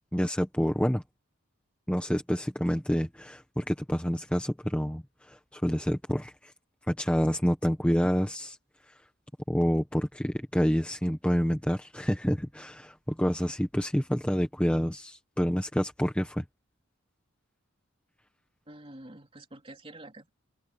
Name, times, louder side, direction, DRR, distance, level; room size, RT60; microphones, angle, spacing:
voice 1, 0.1-1.0 1.9-6.5 6.9-8.6 8.9-9.0 9.5-16.4, equal, 5° left, 1.4 m, -28 dB
voice 2, 18.7-20.3, right 1 dB, 25° right, 3.9 m, -47 dB
head